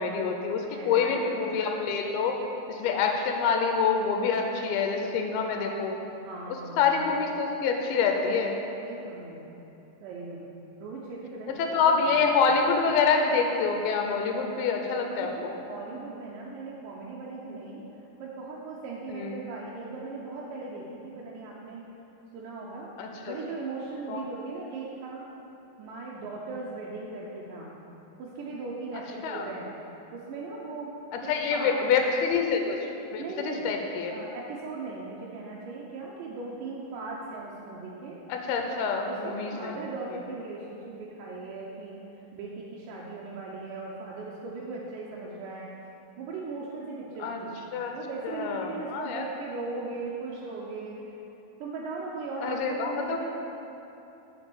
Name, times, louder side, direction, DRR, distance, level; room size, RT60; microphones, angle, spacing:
voice 1, 0.0-2.4 2.7-6.0 6.8-8.6 11.6-15.5 19.1-19.4 23.0-23.3 24.1-24.2 29.2-29.5 31.3-32.8 33.1-34.1 38.3-39.8 47.2-47.4 47.7-47.9 48.2-49.2 52.4-53.2, left 5 dB, 90° left, 3 dB, 2.6 m, -26 dB
voice 2, 0.7-1.3 5.4-5.8 6.2-7.0 8.8-9.5 10.0-10.5 10.8-12.5 15.2-17.8 18.2-21.8 22.3-22.9 23.3-25.3 25.8-27.7 28.2-29.7 30.1-30.9 31.2-31.8 33.2-33.7 34.1-38.2 39.1-42.0 42.3-45.7 46.2-47.5 47.9-51.0 51.6-53.3, right 3 dB, 75° right, -4 dB, 2.1 m, -38 dB
7.1 x 5.3 x 6.8 m, 2.9 s
omnidirectional pair, 4.3 m